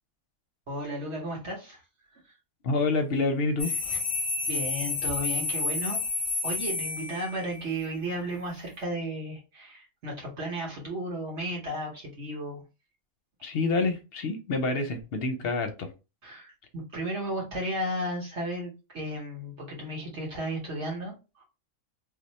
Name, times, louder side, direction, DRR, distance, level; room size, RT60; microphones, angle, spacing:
voice 1, 0.7-1.8 2.2-2.4 3.9-4.0 4.4-6.0 6.4-12.6 16.2-21.4, right 1 dB, 60° right, 1.3 m, -34 dB
voice 2, 2.6-3.7 13.4-15.9, left 3 dB, 60° left, 0.7 m, -27 dB
sound 1, 3.6-7.6, left 4 dB, 25° left, 0.6 m, -30 dB
2.9 x 2.0 x 4.0 m
omnidirectional pair, 1.4 m